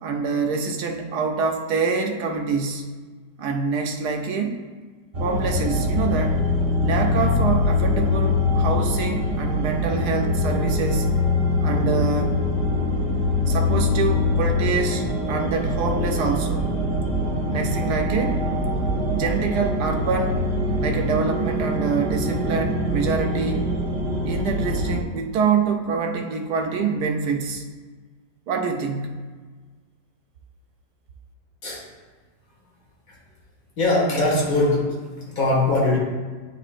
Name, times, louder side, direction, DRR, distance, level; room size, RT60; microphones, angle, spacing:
voice 1, 0.0-2.9 3.4-4.6 5.2-6.4 6.8-11.1 11.6-12.4 13.5-16.7 17.5-18.4 19.1-20.5 20.8-23.7 24.2-27.6 28.5-29.2, right 5 dB, 70° right, 3 dB, 1.2 m, -25 dB
sound 1, 5.1-25.0, left 2 dB, 50° right, 1.1 m, -23 dB
voice 2, 33.8-34.9 35.2-36.0, left 2 dB, 50° left, -5 dB, 2.2 m, -21 dB
10.0 x 3.8 x 2.5 m, 1.4 s
omnidirectional pair, 1.9 m